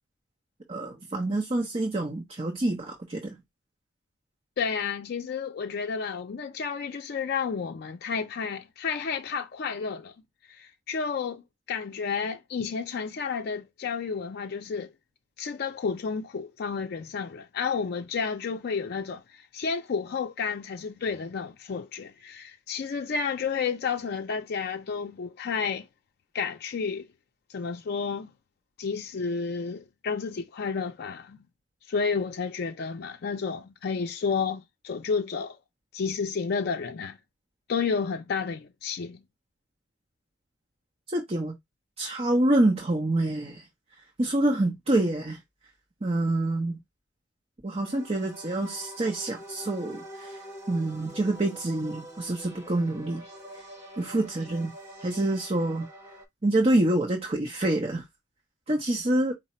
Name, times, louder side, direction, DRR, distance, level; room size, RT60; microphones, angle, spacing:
voice 1, 0.7-3.3 41.1-41.5 42.0-43.6 44.2-45.4 46.0-46.8 47.6-50.4 50.7-53.2 54.0-54.7 55.0-55.9 56.4-58.0 58.7-59.3, right 1 dB, 35° right, 0.7 m, -26 dB
voice 2, 4.6-10.1 10.5-14.9 15.4-25.9 26.3-27.1 27.5-28.3 28.8-31.4 31.9-35.6 35.9-37.2 37.7-39.2, left 5 dB, 55° left, 0.4 m, -31 dB
sound 1, 47.9-56.3, equal, 15° right, 2.3 m, -45 dB
4.8 x 2.0 x 4.2 m
head